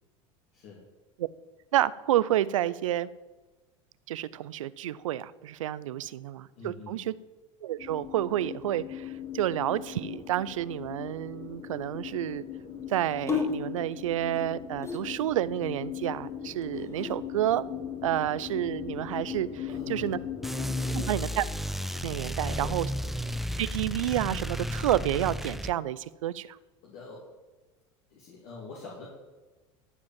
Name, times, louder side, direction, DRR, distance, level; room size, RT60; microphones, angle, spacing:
voice 1, 1.7-3.1 4.1-7.1 7.6-12.4 12.9-17.6 18.0-20.2 20.9-21.4 22.0-22.9 23.6-26.6, right 12 dB, 85° right, 18 dB, 0.5 m, -30 dB
voice 2, 6.6-7.0 19.7-20.2 20.8-21.3 22.4-22.8 23.1-23.4 26.8-27.3 28.1-29.1, left 4 dB, 60° left, -4 dB, 2.9 m, -45 dB
sound 1, 7.8-21.1, left 9 dB, 35° left, 1.5 m, -39 dB
sound 2, 8.0-8.8 9.7-10.7 13.0-15.4 16.6-17.2, left 6 dB, 15° left, 1.7 m, -35 dB
sound 3, 20.4-25.7, equal, ahead, 0.5 m, -33 dB
13.0 x 5.0 x 7.4 m, 1.2 s
hypercardioid pair, 90°, 16 cm